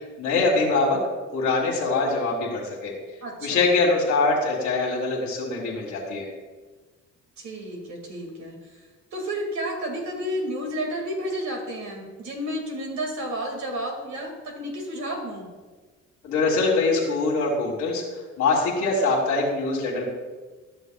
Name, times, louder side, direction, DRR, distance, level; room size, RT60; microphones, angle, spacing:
voice 1, 0.2-1.0 1.3-2.9 3.4-6.3 16.2-18.0 18.4-20.1, left 3 dB, 65° left, -3 dB, 1.8 m, -23 dB
voice 2, 3.2-3.7 7.4-8.6 9.1-15.5, equal, 65° right, 2 dB, 2.1 m, -31 dB
12.0 x 6.6 x 2.3 m, 1.3 s
cardioid pair, 90°, 30 cm